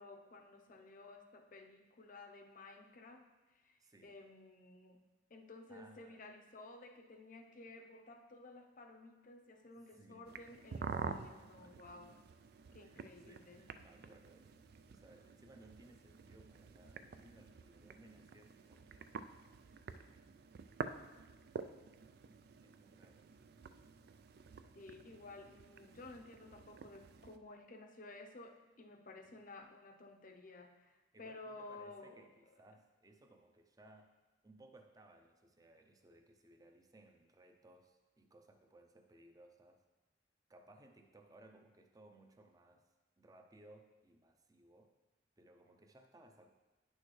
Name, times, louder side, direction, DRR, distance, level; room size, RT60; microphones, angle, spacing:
voice 1, 0.0-5.0 5.3-12.2 12.7-13.7 24.7-32.3, left 2 dB, 50° left, 5 dB, 0.7 m, -54 dB
voice 2, 3.8-4.1 5.7-6.2 9.8-10.3 11.2-11.8 12.8-19.1 22.6-23.3 29.4-29.5 31.1-34.2 34.4-39.8 40.5-42.8 43.2-44.9 45.4-46.5, right 2 dB, 20° right, 5 dB, 0.6 m, -62 dB
sound 1, 10.2-27.4, right 5 dB, 60° right, 0.4 m, -49 dB
9.5 x 6.4 x 3.2 m, 1.2 s
head